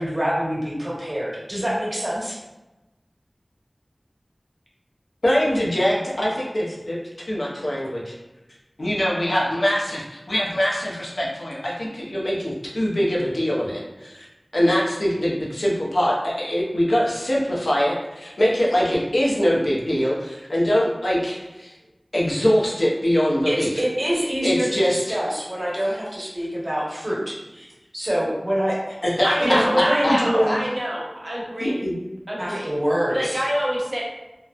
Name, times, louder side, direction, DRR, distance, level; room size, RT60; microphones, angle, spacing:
voice 1, 0.0-2.3 23.4-27.7 27.9-29.0 29.4-30.7 32.4-33.4, equal, 45° right, -7 dB, 1.1 m, -25 dB
voice 2, 5.2-8.1 8.8-14.3 14.5-21.7 22.1-23.7 24.4-25.2 29.0-30.6 31.6-31.9, equal, 90° left, -5 dB, 0.6 m, -23 dB
voice 3, 29.2-31.9 32.3-32.7 33.1-34.0, equal, 65° right, -5 dB, 0.7 m, -26 dB
2.9 x 2.0 x 2.3 m, 1.0 s
wide cardioid pair, 45°, 0 cm